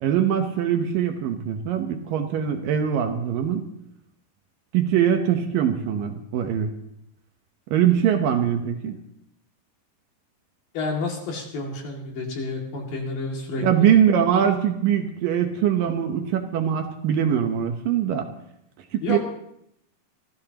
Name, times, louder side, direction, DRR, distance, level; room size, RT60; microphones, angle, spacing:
voice 1, 0.0-3.7 4.7-6.7 7.7-9.0 13.6-18.3 18.9-19.2, right 9 dB, 70° right, 5 dB, 2.4 m, -22 dB
voice 2, 10.7-13.9 19.0-19.2, left 3 dB, 65° left, 0 dB, 4.0 m, -30 dB
25.5 x 14.0 x 2.9 m, 0.75 s
omnidirectional pair, 4.5 m